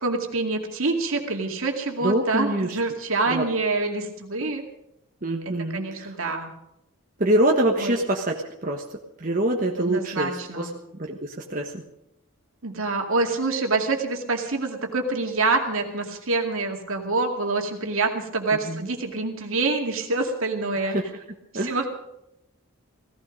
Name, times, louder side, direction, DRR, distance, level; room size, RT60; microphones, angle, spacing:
voice 1, 0.0-4.6 5.7-6.5 7.8-7.9 9.8-10.7 12.6-20.9 21.6-21.9, right 3 dB, 70° right, 2 dB, 2.3 m, -26 dB
voice 2, 2.0-2.8 3.3-3.5 4.4-4.5 5.2-6.1 7.2-8.4 8.6-8.8 9.2-11.8 18.7-18.9 20.8-21.0 21.5-21.8, right 1 dB, 40° right, 0 dB, 1.3 m, -25 dB
17.0 x 15.5 x 5.2 m, 0.83 s
head